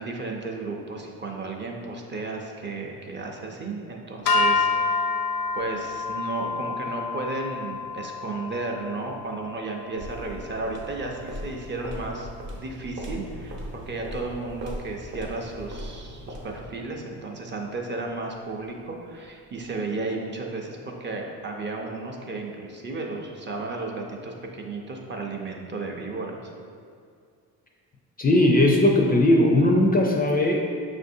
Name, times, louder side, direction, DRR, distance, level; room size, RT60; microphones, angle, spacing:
voice 1, 0.0-4.7 5.5-12.3 12.6-26.5, right 3 dB, 30° right, 0 dB, 0.5 m, -33 dB
sound 1, 4.3-10.6, left 4 dB, 75° left, 0.5 m, -28 dB
sound 2, 10.0-16.8, right 1 dB, 50° right, 0.8 m, -38 dB
voice 2, 28.2-30.6, left 1 dB, 25° left, 0 dB, 0.4 m, -19 dB
6.2 x 2.6 x 2.6 m, 2.3 s
cardioid pair, 95°, 36 cm